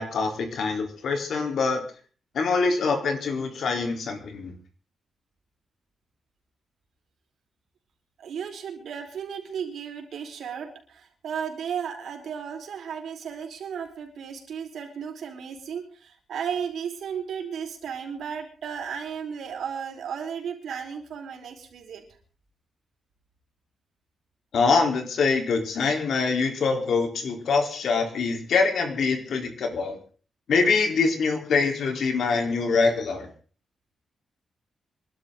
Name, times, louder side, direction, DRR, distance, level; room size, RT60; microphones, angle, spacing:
voice 1, 0.0-1.8 2.3-4.5 24.5-30.0 30.5-33.3, left 4 dB, 70° left, 4 dB, 4.1 m, -24 dB
voice 2, 8.2-22.0, right 7 dB, 75° right, 3 dB, 4.8 m, -34 dB
25.5 x 12.5 x 4.0 m, 0.40 s
wide cardioid pair, 145°, 0 cm